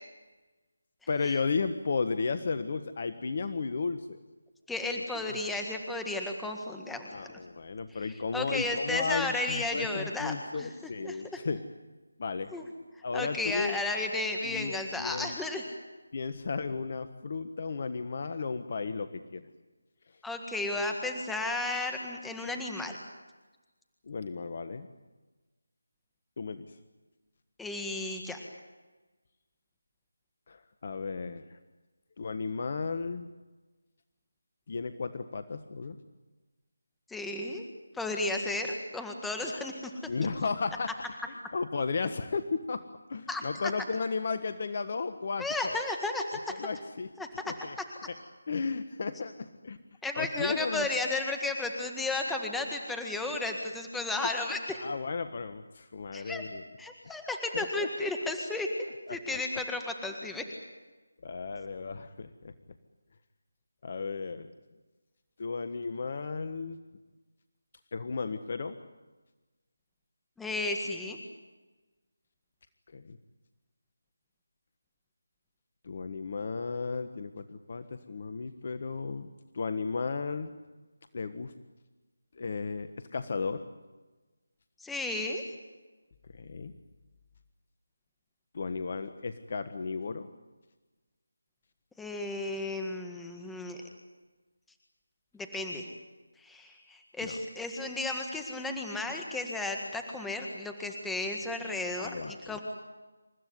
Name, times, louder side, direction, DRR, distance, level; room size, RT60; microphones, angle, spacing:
voice 1, 1.1-4.2 4.9-5.4 7.1-11.6 12.2-12.5 13.0-13.8 14.4-15.3 16.1-19.5 24.1-24.9 26.4-26.7 30.5-31.6 32.2-33.3 34.7-36.0 40.1-41.0 41.3-42.8 43.1-45.8 46.5-47.1 47.5-47.8 48.1-48.2 48.5-49.8 50.1-50.9 54.2-54.4 54.8-56.6 57.5-58.1 59.1-59.4 61.2-62.5 63.8-64.5 65.4-66.8 67.9-68.8 72.9-73.2 75.8-79.3 79.5-80.5 81.1-81.5 82.4-83.6 86.3-86.7 88.5-90.3 97.2-97.4 102.0-102.6, left 4 dB, 45° left, 10 dB, 1.4 m, -34 dB
voice 2, 4.7-7.2 8.3-10.7 11.0-11.4 12.5-12.6 13.1-15.6 20.2-23.0 27.6-28.4 37.1-37.6 37.9-39.9 43.3-43.7 45.4-46.6 47.2-47.5 50.0-54.8 56.1-56.4 56.8-58.7 59.1-60.5 70.4-71.2 84.8-85.4 92.0-93.8 95.3-95.9 96.4-102.6, left 2 dB, 5° left, 3 dB, 1.8 m, -33 dB
28.5 x 15.5 x 9.6 m, 1.2 s
figure-of-eight pair, 160°, 0 cm